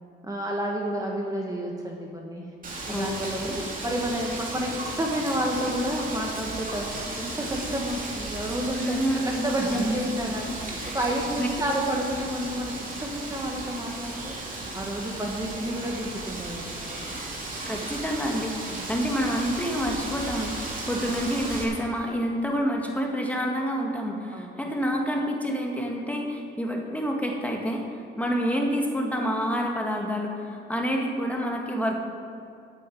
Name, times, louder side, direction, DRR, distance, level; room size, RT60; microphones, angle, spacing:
voice 1, 0.2-2.5 2.9-14.3 14.7-17.2 18.7-18.8 24.3-24.7, equal, 15° right, -1 dB, 1.6 m, -30 dB
Wind, 2.6-21.6, right 2 dB, 45° right, 3.0 m, -35 dB
voice 2, 2.9-3.6 8.8-10.0 10.8-11.0 11.4-11.5 17.7-27.8 28.2-32.0, equal, 5° left, 0 dB, 2.0 m, -28 dB
8.9 x 8.4 x 9.4 m, 2.4 s
cardioid pair, 90°, 20 cm